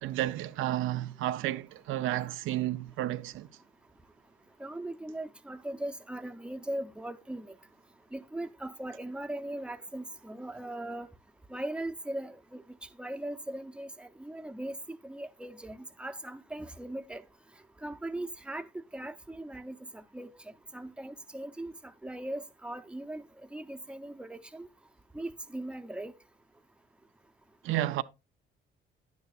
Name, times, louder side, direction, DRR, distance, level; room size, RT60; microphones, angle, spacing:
voice 1, 0.0-3.5 27.6-28.0, right 14 dB, 85° right, 0.5 m, -31 dB
voice 2, 4.6-7.5 8.1-11.1 11.5-17.2 17.8-20.3 20.7-21.7 22.0-23.2 23.5-24.7 25.1-26.1, right 1 dB, 5° right, 0.7 m, -39 dB
10.5 x 9.4 x 2.4 m
cardioid pair, 90°, 20 cm